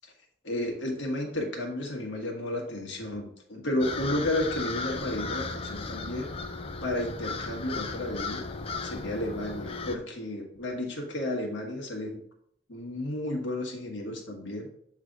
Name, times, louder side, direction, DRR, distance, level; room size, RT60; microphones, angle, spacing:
voice 1, 0.4-6.3 6.8-8.4 8.8-12.2 12.7-14.7, left 1 dB, 75° left, 1 dB, 1.4 m, -32 dB
sound 1, 3.8-10.0, left 4 dB, 30° left, 0.4 m, -36 dB
7.4 x 3.3 x 3.9 m, 0.68 s
head